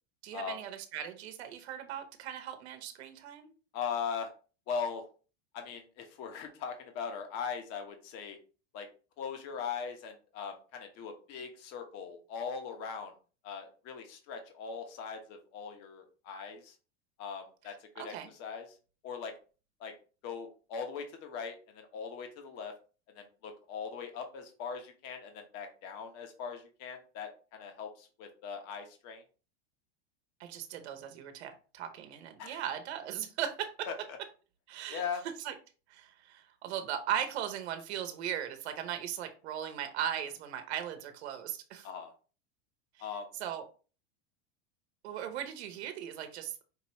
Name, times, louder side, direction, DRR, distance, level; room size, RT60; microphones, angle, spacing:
voice 1, 0.2-3.5 18.0-18.3 30.4-33.7 34.7-35.0 35.4-35.5 35.9-41.9 43.0-43.1 43.4-43.6 45.0-46.6, right 10 dB, 85° right, 8 dB, 0.9 m, -38 dB
voice 2, 3.7-4.3 4.7-5.0 5.5-8.4 8.7-8.9 9.2-13.1 13.4-16.7 17.2-18.1 18.4-18.7 19.0-19.3 19.8-19.9 20.2-22.7 23.1-29.2 32.4-32.6 33.9-34.0 34.9-35.2 41.8-42.1 43.0-43.3, left 6 dB, 50° left, 5 dB, 1.1 m, -40 dB
5.2 x 3.0 x 3.0 m, 0.36 s
supercardioid pair, 135°, 32 cm